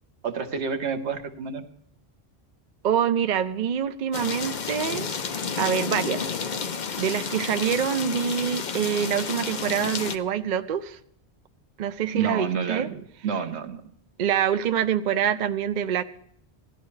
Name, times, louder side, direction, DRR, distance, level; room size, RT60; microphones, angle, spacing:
voice 1, 0.2-1.7 12.1-13.8, right 6 dB, 75° right, 7 dB, 1.3 m, -29 dB
voice 2, 2.8-5.1 5.6-6.3 7.0-11.0 11.8-12.9 14.2-16.0, right 8 dB, 50° right, 10 dB, 0.6 m, -25 dB
sound 1, 4.1-10.2, left 6 dB, 45° left, 0.8 m, -31 dB
17.0 x 12.0 x 3.2 m, 0.71 s
omnidirectional pair, 1.1 m